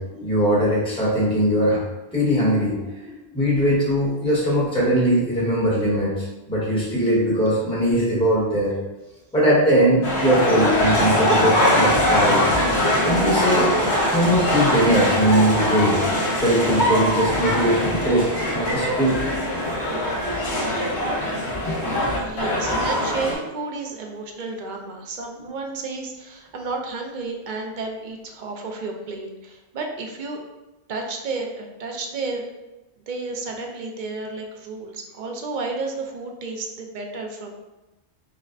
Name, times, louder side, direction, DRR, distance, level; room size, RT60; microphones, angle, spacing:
voice 1, 0.0-1.8 2.1-8.7 9.3-12.4 13.0-13.7 14.1-16.0 16.3-20.3 21.6-21.7, equal, 5° left, -7 dB, 0.9 m, -21 dB
sound 1, 10.0-23.3, left 1 dB, 75° left, 1.2 m, -22 dB
voice 2, 22.2-30.4 30.9-32.4 33.1-37.5, right 3 dB, 55° right, 2 dB, 0.6 m, -32 dB
5.7 x 2.1 x 2.5 m, 1.0 s
omnidirectional pair, 1.1 m